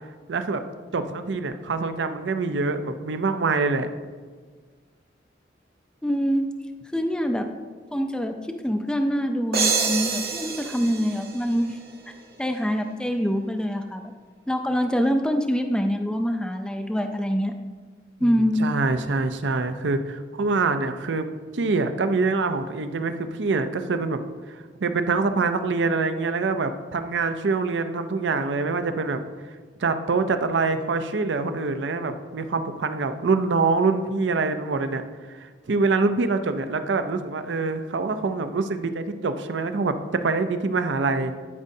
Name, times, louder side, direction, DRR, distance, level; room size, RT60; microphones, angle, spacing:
voice 1, 0.3-0.6 0.9-3.9 18.2-18.3 18.6-21.3 21.5-24.2 24.5-29.2 29.8-35.0 35.3-41.4, right 3 dB, 80° right, 9 dB, 0.5 m, -25 dB
voice 2, 6.0-6.5 6.9-7.5 7.9-8.4 8.6-11.8 12.4-14.1 14.5-17.5 18.2-18.6, equal, 5° left, 5 dB, 0.4 m, -25 dB
sound 1, 9.5-12.2, right 5 dB, 55° right, 0.9 m, -27 dB
12.0 x 5.2 x 2.7 m, 1.5 s
head